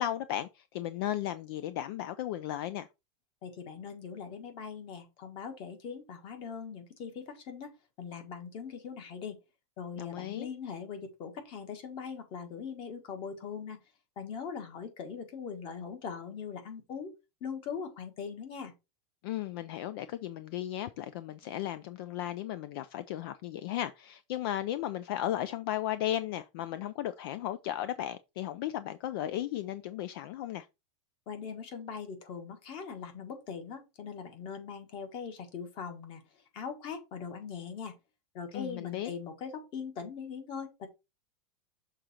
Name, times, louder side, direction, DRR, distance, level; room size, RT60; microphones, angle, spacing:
voice 1, 0.0-2.9 10.0-10.5 19.2-30.7 38.5-39.1, left 12 dB, 50° left, 0.4 m, -35 dB
voice 2, 3.4-9.4 9.8-13.8 14.2-17.1 17.4-18.7 31.3-36.2 36.5-37.9 38.3-40.9, left 6 dB, 35° left, 1.5 m, -41 dB
6.5 x 3.8 x 4.2 m
supercardioid pair, 165°, 16 cm